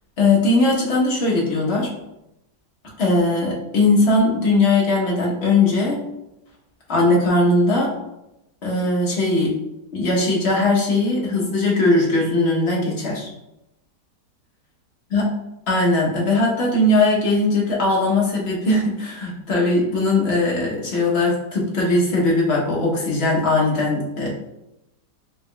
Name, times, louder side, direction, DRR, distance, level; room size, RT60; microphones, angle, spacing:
voice 1, 0.2-1.9 3.0-6.0 6.9-7.9 8.6-9.6 9.9-13.3 15.1-15.3 15.7-24.3, left 2 dB, 45° left, -4 dB, 1.0 m, -19 dB
4.6 x 3.5 x 2.2 m, 0.89 s
omnidirectional pair, 1.9 m